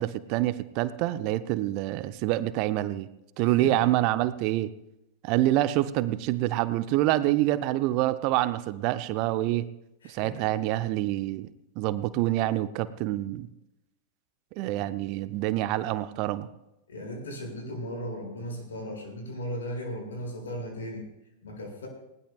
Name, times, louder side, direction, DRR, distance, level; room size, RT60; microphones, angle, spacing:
voice 1, 0.0-3.1 3.4-4.7 5.2-9.7 10.1-11.5 11.8-13.5 14.6-16.5, right 15 dB, 45° right, 13 dB, 0.7 m, -26 dB
voice 2, 3.4-3.9 10.0-10.3 16.9-21.1 21.4-21.9, equal, 65° left, 1 dB, 6.5 m, -36 dB
20.0 x 19.0 x 2.5 m, 0.88 s
figure-of-eight pair, 90°, 0 cm